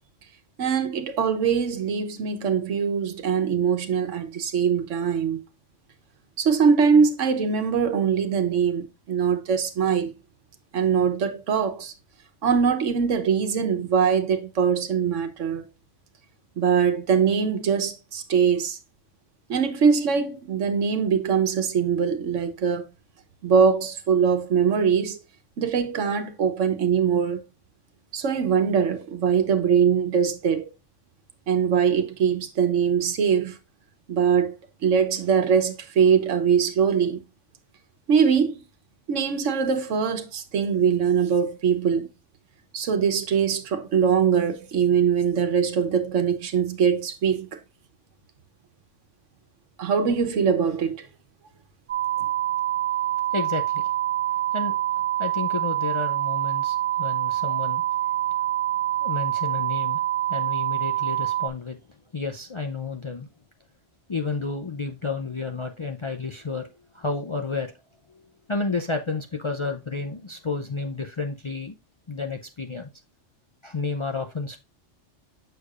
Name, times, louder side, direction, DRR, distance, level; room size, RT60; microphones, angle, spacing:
voice 1, 0.6-5.4 6.4-10.1 10.7-11.9 12.4-15.6 16.6-18.8 19.5-22.9 23.4-25.2 25.6-27.4 28.1-30.7 31.5-33.6 34.1-34.5 34.8-37.2 38.1-38.6 39.1-42.1 42.7-47.6 49.8-51.1, right 6 dB, 85° right, 1.3 m, -22 dB
sound 1, 51.9-61.5, right 13 dB, 60° right, 0.3 m, -26 dB
voice 2, 53.3-53.8 54.5-54.8 55.2-57.8 59.0-60.0 60.3-61.8 62.1-63.3 64.1-66.7 66.9-67.7 68.5-71.8 72.1-72.9 73.6-74.6, left 4 dB, 40° left, 0.4 m, -31 dB
6.8 x 6.5 x 2.4 m
omnidirectional pair, 1.2 m